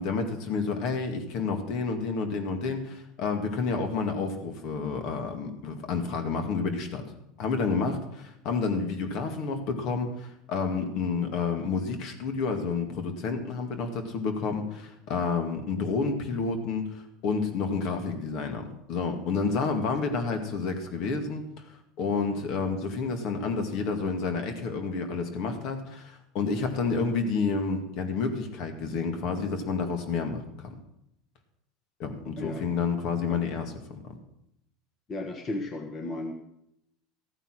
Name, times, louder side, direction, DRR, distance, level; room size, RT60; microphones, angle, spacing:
voice 1, 0.0-7.0 7.4-21.6 22.0-30.7 32.0-33.7, left 4 dB, 55° left, 6 dB, 2.1 m, -30 dB
voice 2, 32.2-32.6 33.2-33.4 35.1-36.3, left 2 dB, 30° left, 4 dB, 1.4 m, -35 dB
14.0 x 9.1 x 6.2 m, 0.79 s
supercardioid pair, 130°, 0 cm